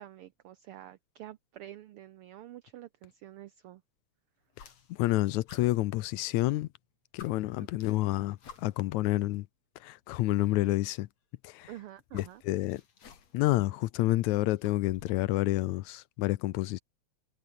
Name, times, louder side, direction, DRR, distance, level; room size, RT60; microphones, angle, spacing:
voice 1, 0.0-3.8 7.6-7.7 11.7-12.4, right 13 dB, 80° right, 1.2 m, -48 dB
sound 1, 4.5-5.1 5.5-6.5 6.8-6.9 7.2-9.0 10.0-10.1 11.5-13.5 13.9-15.3, left 6 dB, 60° left, 4.2 m, -54 dB
voice 2, 4.9-6.7 7.1-9.5 9.8-11.1 11.4-11.7 12.1-12.8 13.3-16.8, left 17 dB, 80° left, 2.1 m, -29 dB
omnidirectional pair, 3.3 m